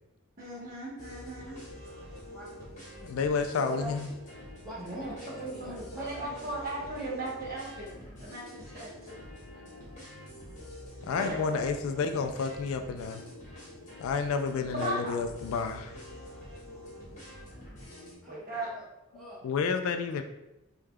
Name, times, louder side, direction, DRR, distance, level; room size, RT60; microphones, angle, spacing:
voice 1, 0.4-1.6 3.6-3.9 4.8-5.1 5.4-7.9 8.2-9.2 11.1-11.6 14.7-15.1 18.3-18.7, right 2 dB, 45° right, -5 dB, 1.1 m, -37 dB
sound 1, 1.0-18.1, left 1 dB, 35° left, 1.1 m, -46 dB
voice 2, 2.3-2.7 3.7-3.8 4.6-7.1 13.1-13.3 18.2-19.4, equal, ahead, -8 dB, 0.9 m, -49 dB
voice 3, 3.0-4.1 11.0-13.2 14.0-16.0 19.4-20.2, left 5 dB, 80° left, 8 dB, 0.3 m, -30 dB
4.8 x 2.3 x 2.2 m, 0.93 s
head